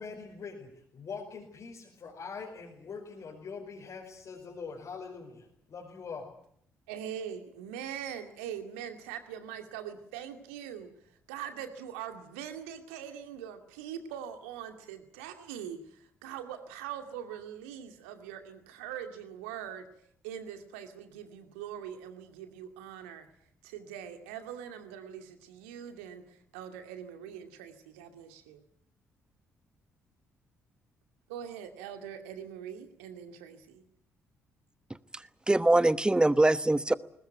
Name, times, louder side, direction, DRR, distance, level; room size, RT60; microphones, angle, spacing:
voice 1, 0.0-6.3, left 5 dB, 45° left, -1 dB, 5.0 m, -43 dB
voice 2, 6.9-10.9 11.3-19.9 20.2-23.3 23.6-28.6 31.3-33.8, right 9 dB, 75° right, 7 dB, 2.4 m, -42 dB
voice 3, 34.9-36.9, right 2 dB, 10° right, 16 dB, 1.1 m, -24 dB
21.5 x 20.0 x 9.2 m, 0.68 s
figure-of-eight pair, 45°, 7 cm